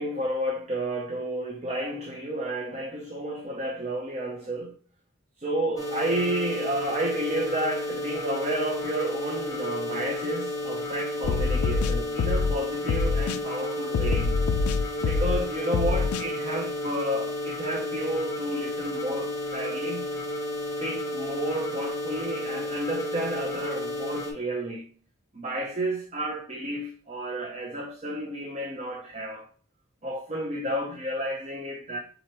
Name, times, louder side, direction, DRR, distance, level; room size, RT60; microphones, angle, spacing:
voice 1, 0.0-4.8 5.4-14.3 15.0-20.1 20.8-24.9 25.3-29.5 30.0-32.0, right 1 dB, 30° right, 0.5 m, -31 dB
sound 1, 5.8-24.3, left 1 dB, 15° left, 0.7 m, -32 dB
sound 2, 11.2-12.6 12.9-13.4 13.9-15.4 15.7-16.2, left 4 dB, 80° left, 0.3 m, -25 dB
4.5 x 3.8 x 2.9 m
head